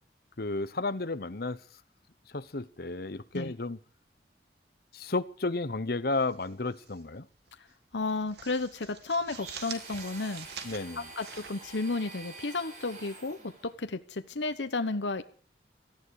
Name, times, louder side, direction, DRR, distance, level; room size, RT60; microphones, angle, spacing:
voice 1, 0.4-1.6 2.3-3.8 4.9-7.3 10.6-11.1, left 3 dB, 60° left, 1.1 m, -32 dB
sound 1, 6.1-7.0 7.3-7.5 7.9-12.4, right 7 dB, 65° right, 2.6 m, -46 dB
voice 2, 7.9-10.5 11.2-15.2, left 3 dB, 85° left, 1.1 m, -33 dB
Domestic sounds home sounds, 9.3-13.7, right 3 dB, 45° right, 6.0 m, -47 dB
18.0 x 14.5 x 4.9 m
head